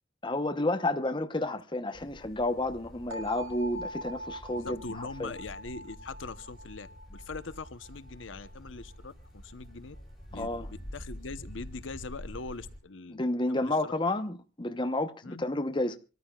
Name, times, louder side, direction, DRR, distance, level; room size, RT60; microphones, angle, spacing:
voice 1, 0.2-5.3 10.3-10.7 13.1-16.0, left 2 dB, 25° left, 0.9 m, -31 dB
sound 1, 1.9-12.8, equal, ahead, 5.5 m, -47 dB
sound 2, 3.1-8.9, equal, 90° right, 3.4 m, -43 dB
voice 2, 4.5-10.0 10.3-10.5 10.9-13.2 13.5-13.9 15.2-15.4, left 3 dB, 75° left, 0.9 m, -42 dB
26.0 x 13.5 x 2.4 m
head